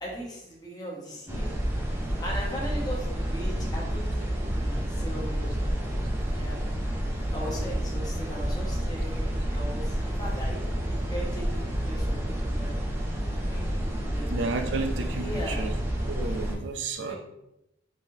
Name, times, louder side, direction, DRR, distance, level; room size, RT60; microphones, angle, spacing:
voice 1, 0.0-1.5 2.2-5.8 6.3-6.6 7.3-12.7 13.5-14.2 15.1-15.7 17.1-17.2, equal, 20° left, -3 dB, 0.8 m, -39 dB
sound 1, 1.3-16.5, equal, 15° right, 0.4 m, -29 dB
voice 2, 14.3-15.7 16.1-17.2, right 3 dB, 75° right, 6 dB, 0.4 m, -32 dB
3.3 x 2.6 x 2.6 m, 0.87 s
head